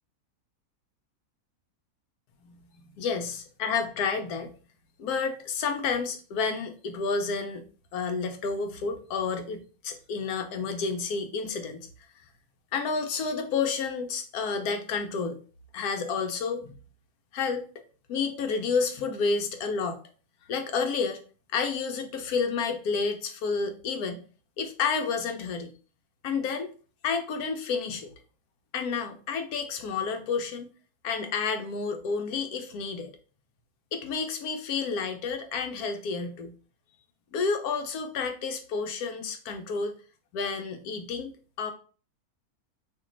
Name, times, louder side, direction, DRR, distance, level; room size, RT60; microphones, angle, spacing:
voice 1, 3.0-4.5 5.0-7.6 7.9-11.9 12.7-15.4 15.7-16.7 17.3-17.6 18.1-20.0 20.5-21.2 21.5-24.2 24.6-25.7 26.2-26.7 27.0-28.1 28.7-30.7 31.0-33.1 33.9-36.5 37.3-39.9 40.3-41.7, left 5 dB, 80° left, 6 dB, 1.1 m, -30 dB
3.0 x 2.9 x 3.7 m, 0.38 s
omnidirectional pair, 1.6 m